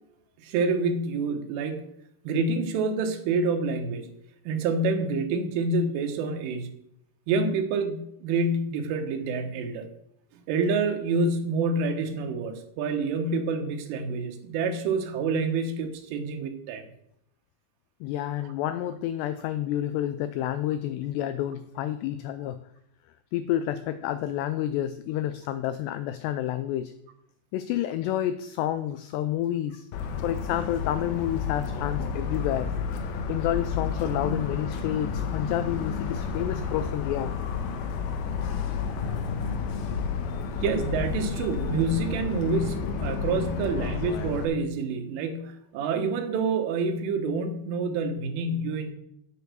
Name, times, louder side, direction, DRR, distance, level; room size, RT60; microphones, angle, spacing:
voice 1, 0.4-1.8 2.3-4.1 4.5-6.7 7.3-9.9 10.5-16.8 40.6-48.9, right 3 dB, 90° right, 6 dB, 3.8 m, -27 dB
voice 2, 18.0-22.6 23.3-26.9 27.5-29.9 30.2-32.7 33.3-37.4, left 12 dB, 90° left, 12 dB, 2.4 m, -29 dB
Motor vehicle (road) / Siren, 29.9-44.4, left 5 dB, 70° left, 2.4 m, -31 dB
8.9 x 8.5 x 6.8 m, 0.75 s
omnidirectional pair, 5.5 m